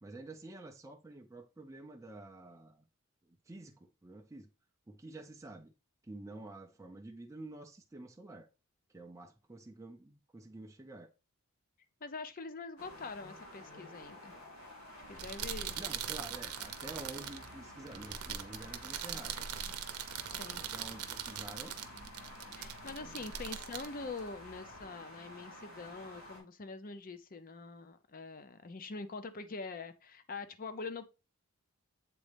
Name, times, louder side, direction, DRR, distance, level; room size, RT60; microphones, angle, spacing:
voice 1, 0.0-2.9 3.2-4.5 4.9-5.7 6.0-8.5 8.9-11.1 15.8-19.5 20.5-21.8 23.0-23.3, right 2 dB, 15° right, 0.5 m, -49 dB
voice 2, 12.0-14.3 15.1-15.7 19.1-19.2 20.3-20.6 22.5-31.1, left 4 dB, 40° left, 0.6 m, -44 dB
sound 1, 12.8-26.4, left 1 dB, 65° left, 3.4 m, -51 dB
sound 2, 15.0-24.8, right 9 dB, 85° right, 0.7 m, -42 dB
7.7 x 4.0 x 3.3 m
head